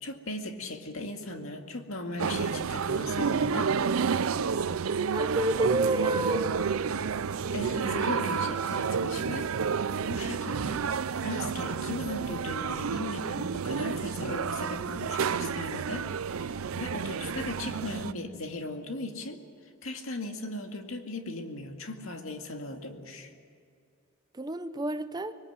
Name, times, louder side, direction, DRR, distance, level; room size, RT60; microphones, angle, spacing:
voice 1, 0.0-3.7 7.5-10.9 11.2-19.4 19.8-23.3, left 2 dB, 70° left, 4 dB, 2.2 m, -38 dB
sound 1, 2.2-18.1, right 6 dB, 80° right, 0.5 m, -30 dB
voice 2, 5.1-6.6 24.3-25.3, right 2 dB, 20° right, 11 dB, 0.7 m, -29 dB
25.5 x 21.5 x 8.0 m, 2.3 s
head